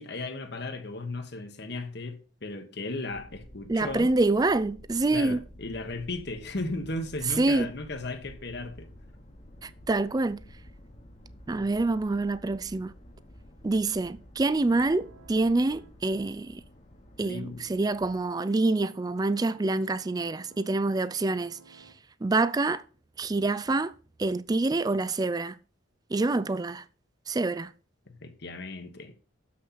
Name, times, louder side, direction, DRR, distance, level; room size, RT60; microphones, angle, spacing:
voice 1, 0.0-4.1 5.1-8.9 11.5-11.6 17.2-17.7 28.1-29.1, left 2 dB, 55° left, 1.2 m, -36 dB
sound 1, 3.1-18.2, equal, 35° left, 1.2 m, -51 dB
voice 2, 3.7-5.4 7.4-7.7 9.6-10.4 11.5-12.9 13.6-16.6 17.2-21.9 22.2-22.8 23.2-23.9 24.2-25.6 26.1-26.8 27.3-27.7, right 2 dB, 20° right, 0.3 m, -26 dB
sound 2, 14.4-15.9 18.2-21.9, right 3 dB, 85° right, 1.3 m, -55 dB
7.3 x 6.3 x 5.7 m
head